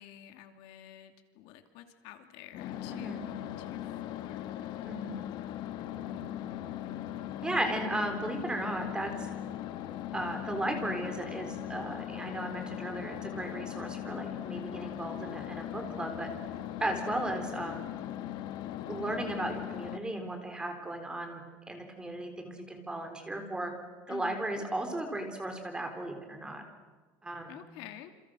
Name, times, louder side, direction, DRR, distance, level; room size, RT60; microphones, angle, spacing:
voice 1, 0.0-4.5 24.1-24.6 27.5-28.1, left 12 dB, 70° left, 7 dB, 2.6 m, -50 dB
sound 1, 2.5-20.0, left 12 dB, 55° left, 1.3 m, -39 dB
voice 2, 2.9-3.2 4.9-5.1 6.0-6.2 7.4-9.1 10.1-16.3 16.8-17.8 18.9-23.7 24.1-26.6 27.2-27.6, right 1 dB, 10° right, 4 dB, 3.8 m, -36 dB
28.5 x 28.0 x 6.3 m, 1.4 s
cardioid pair, 165°, 9 cm